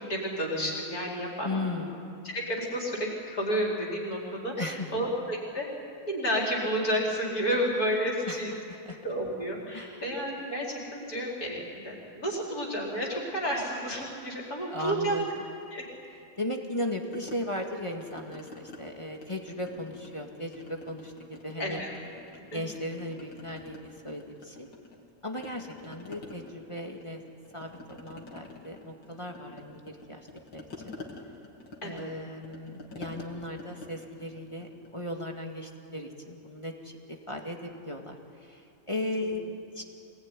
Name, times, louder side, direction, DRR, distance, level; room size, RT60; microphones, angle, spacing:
voice 1, 0.1-1.6 2.3-5.6 6.1-8.5 9.0-15.2 15.7-15.8 21.6-21.9 31.8-32.1 39.2-39.3, equal, 50° left, -2 dB, 4.9 m, -31 dB
voice 2, 1.4-2.0 4.6-4.9 8.3-9.0 9.7-10.0 14.7-15.2 16.4-21.8 22.5-24.7 25.2-27.2 27.5-30.3 30.5-31.0 31.8-39.8, left 1 dB, 15° left, 2 dB, 1.9 m, -37 dB
sound 1, 17.1-18.8 19.1-20.2 20.5-22.4 22.7-25.1 25.4-35.2, left 2 dB, 70° left, 3.5 m, -48 dB
26.0 x 20.0 x 9.9 m, 2.6 s
omnidirectional pair, 2.1 m